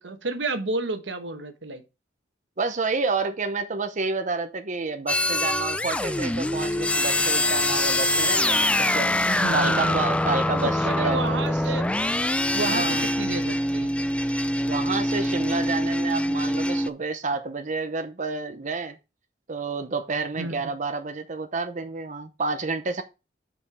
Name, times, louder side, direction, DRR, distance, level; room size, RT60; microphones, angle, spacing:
voice 1, 0.0-1.8 9.3-10.0 10.6-11.9 12.5-13.9 20.3-20.6, right 3 dB, 90° right, 1.2 m, -31 dB
voice 2, 2.6-9.1 9.5-11.4 12.6-13.0 14.6-19.0 19.5-23.0, right 3 dB, 45° right, 0.8 m, -29 dB
sound 1, 5.1-16.9, left 1 dB, 5° left, 0.4 m, -24 dB
5.3 x 5.3 x 6.1 m
head